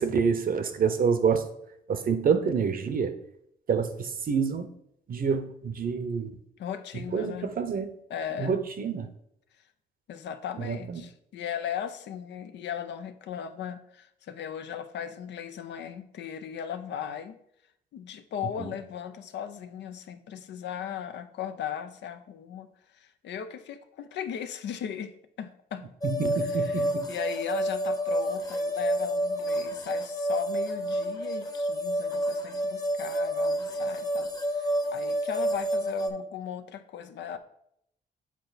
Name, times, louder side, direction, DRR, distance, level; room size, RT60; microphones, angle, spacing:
voice 1, 0.0-1.5 1.9-3.1 3.7-4.7 5.1-6.4 6.9-7.9 8.4-9.1 10.6-11.0 18.6-18.7 26.0-27.1, right 6 dB, 50° right, 10 dB, 0.8 m, -27 dB
voice 2, 6.6-7.5 8.1-8.7 10.1-17.4 17.9-25.9 26.4-37.4, left 9 dB, 75° left, 9 dB, 0.6 m, -37 dB
sound 1, 26.0-36.1, equal, 20° left, 0.9 m, -29 dB
7.4 x 4.0 x 4.1 m, 0.73 s
cardioid pair, 70°, 18 cm